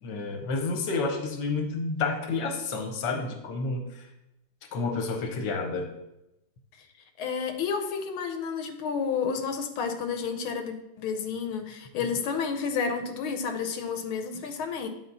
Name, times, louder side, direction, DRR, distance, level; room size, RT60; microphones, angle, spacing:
voice 1, 0.0-4.1 4.7-5.8, left 3 dB, 60° left, 4 dB, 1.5 m, -30 dB
voice 2, 7.2-14.9, left 6 dB, 85° left, 6 dB, 1.6 m, -31 dB
8.9 x 4.2 x 4.0 m, 0.88 s
omnidirectional pair, 2.2 m